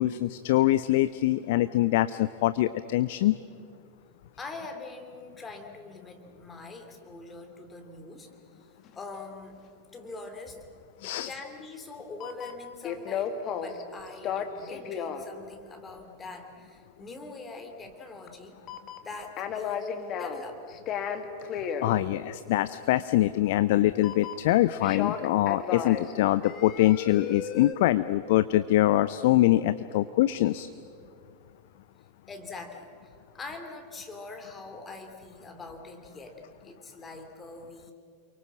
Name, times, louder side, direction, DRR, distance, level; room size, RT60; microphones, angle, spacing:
voice 1, 0.0-3.4 11.0-11.3 21.8-30.7, left 15 dB, 50° left, 14 dB, 0.6 m, -24 dB
voice 2, 4.4-9.5 9.9-10.6 11.0-18.6 19.0-20.6 32.3-37.9, left 3 dB, 15° left, 4 dB, 3.1 m, -43 dB
sound 1, 8.9-9.0 12.2-13.8 14.1-15.2 18.3-18.4 18.7-20.4 20.7-21.9 24.0-24.5 24.8-26.1 26.4-27.7, left 8 dB, 35° left, 2.0 m, -33 dB
29.0 x 23.5 x 7.5 m, 2.4 s
figure-of-eight pair, 90°, 0 cm